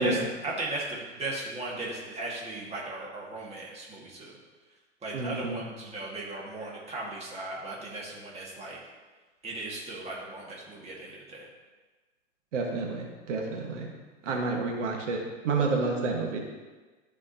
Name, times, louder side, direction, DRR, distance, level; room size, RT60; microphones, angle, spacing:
voice 1, 0.0-4.4 5.0-8.8 9.4-11.5, right 2 dB, 15° right, -4 dB, 1.9 m, -37 dB
voice 2, 5.1-5.6 12.5-13.9 14.2-16.4, right 3 dB, 70° right, 0 dB, 1.6 m, -29 dB
13.5 x 4.9 x 2.9 m, 1.3 s
hypercardioid pair, 120°, 38 cm